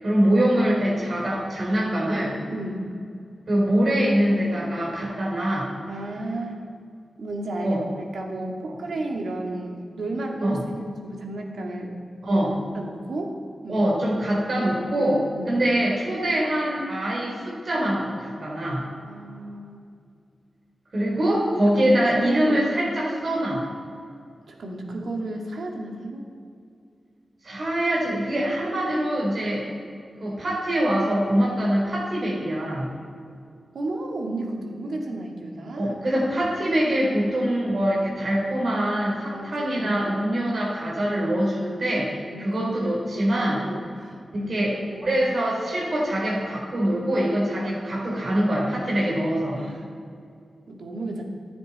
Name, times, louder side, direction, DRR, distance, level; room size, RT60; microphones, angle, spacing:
voice 1, 0.0-2.4 3.5-5.7 7.6-7.8 8.6-8.7 10.4-10.6 12.2-12.6 13.7-18.9 20.9-23.6 27.4-29.6 30.2-32.9 35.8-43.6 44.3-49.6, right 1 dB, 60° right, -4 dB, 4.2 m, -24 dB
voice 2, 2.5-2.9 5.9-6.7 7.2-11.9 12.3-12.4 12.7-13.4 13.6-13.9 15.4-15.6 19.0-19.8 21.8-22.6 24.5-26.3 33.7-36.0 39.3-39.9 42.3-43.0 43.5-44.5 44.9-45.0 49.5-49.9 50.7-51.2, right 2 dB, 85° right, 1 dB, 2.4 m, -33 dB
26.0 x 9.5 x 4.4 m, 2.3 s
wide cardioid pair, 75°, 0 cm